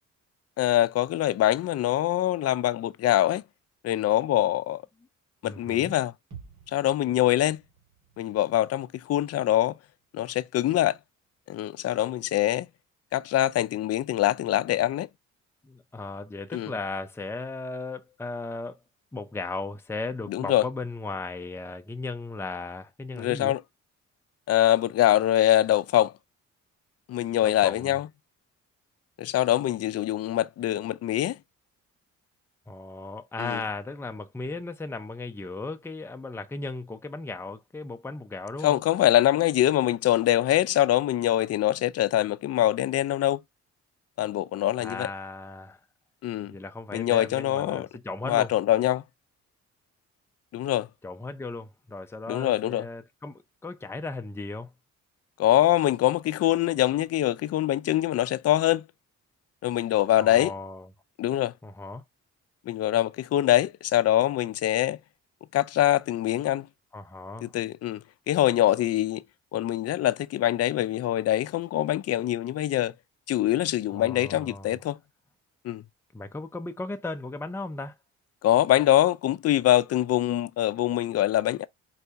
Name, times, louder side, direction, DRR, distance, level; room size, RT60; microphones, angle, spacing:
voice 1, 0.6-3.4 3.8-4.8 5.4-6.1 6.7-7.6 8.2-9.8 10.1-11.0 11.5-12.7 13.1-15.1 16.5-16.7 20.3-20.6 23.1-23.6 24.5-26.1 27.1-28.1 29.2-31.4 33.4-33.6 38.6-43.4 44.2-45.1 46.2-46.6 46.9-47.9 48.3-49.0 50.5-50.9 52.3-52.9 55.4-58.8 59.6-60.5 61.2-61.5 62.7-65.0 65.5-66.7 67.4-69.2 69.5-72.9 73.3-75.0 75.6-75.8 78.4-81.7, left 13 dB, 55° left, 0.5 m, -24 dB
voice 2, 5.4-5.9 15.6-18.8 19.1-23.5 27.4-27.9 32.7-38.8 44.8-45.8 46.4-48.5 51.0-54.7 60.2-60.9 61.6-62.0 66.9-67.5 73.9-74.7 76.1-78.0, left 3 dB, 10° left, 0.6 m, -36 dB
sound 1, 6.3-10.2 10.6-10.7, right 6 dB, 70° right, 2.1 m, -52 dB
4.7 x 2.7 x 3.3 m
cardioid pair, 90°, 30 cm